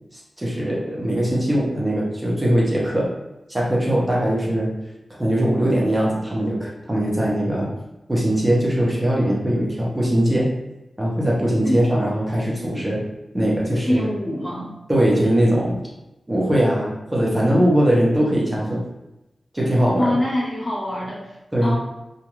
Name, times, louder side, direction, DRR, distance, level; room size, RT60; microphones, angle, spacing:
voice 1, 0.1-3.1 3.5-4.7 5.2-7.7 8.1-10.5 11.0-13.0 13.3-14.1 14.9-15.8 16.3-18.8 19.5-20.2 21.5-21.7, right 1 dB, 20° right, -4 dB, 0.8 m, -20 dB
voice 2, 13.9-14.7 20.0-21.4 21.6-21.8, left 1 dB, 45° left, -6 dB, 1.0 m, -24 dB
2.5 x 2.3 x 3.0 m, 0.94 s
wide cardioid pair, 80°, 0 cm